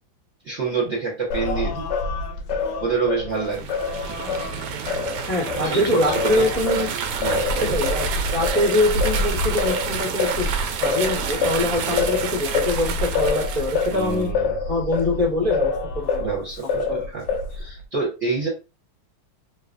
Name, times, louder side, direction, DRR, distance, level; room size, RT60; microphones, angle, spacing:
voice 1, 0.4-1.9 2.8-3.7 5.5-6.4 7.2-7.8 11.8-12.1 13.9-14.6 16.2-18.5, right 4 dB, 40° right, -4 dB, 1.3 m, -27 dB
Singing, 1.3-5.7 6.1-16.4 16.7-17.7, left 4 dB, 75° left, 1.0 m, -26 dB
sound 1, 3.4-14.2, right 7 dB, 90° right, 1.5 m, -29 dB
voice 2, 5.3-6.9 7.7-10.5 10.8-14.3 14.7-16.2 16.9-17.0, left 2 dB, 20° left, -6 dB, 1.0 m, -24 dB
3.2 x 3.0 x 2.5 m, 0.30 s
omnidirectional pair, 2.4 m